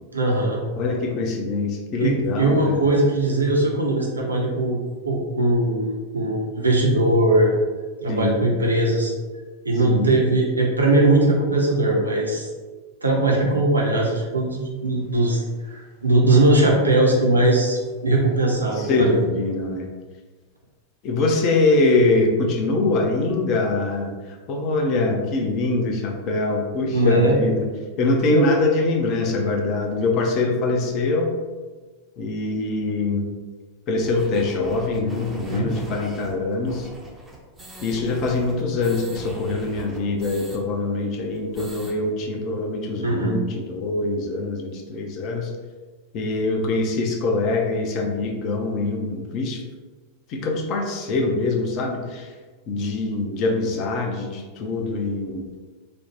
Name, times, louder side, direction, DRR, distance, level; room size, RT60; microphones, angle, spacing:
voice 1, 0.1-0.6 2.0-7.5 8.0-9.1 9.6-12.5 13.0-19.3 26.9-27.4 28.3-28.4 35.5-35.7 43.0-43.4, right 2 dB, 75° right, -1 dB, 0.5 m, -20 dB
voice 2, 0.8-2.9 8.1-8.4 9.8-10.1 18.7-19.9 21.0-24.1 24.5-27.7 28.0-31.3 32.2-33.3 33.9-36.9 37.8-45.5 46.1-49.6 50.3-52.3 52.7-55.4, left 3 dB, 40° left, 2 dB, 0.5 m, -23 dB
sound 1, 34.0-40.6 40.9-41.0 41.3-41.9, right 2 dB, 10° right, 0.5 m, -40 dB
2.9 x 2.0 x 3.0 m, 1.4 s
figure-of-eight pair, 90°, 0 cm